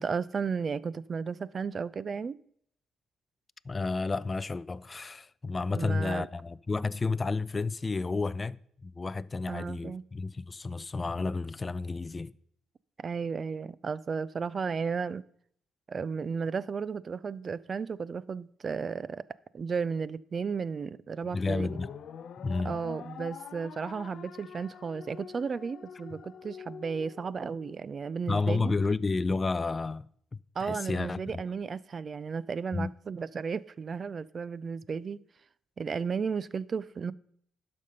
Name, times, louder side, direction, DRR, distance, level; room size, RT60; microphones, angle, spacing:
voice 1, 0.0-2.4 5.7-6.3 9.5-10.0 13.0-15.2 15.9-19.2 19.5-21.7 22.6-28.8 30.6-35.2 35.8-37.1, right 5 dB, 40° right, 0.4 m, -34 dB
voice 2, 3.7-8.6 8.8-12.3 21.3-21.9 22.4-22.8 28.3-30.1 30.6-31.2 32.7-32.9, left 3 dB, 25° left, 0.3 m, -31 dB
sound 1, 21.2-27.8, left 7 dB, 65° left, 0.7 m, -46 dB
12.0 x 5.3 x 5.4 m
cardioid pair, 90°, 0 cm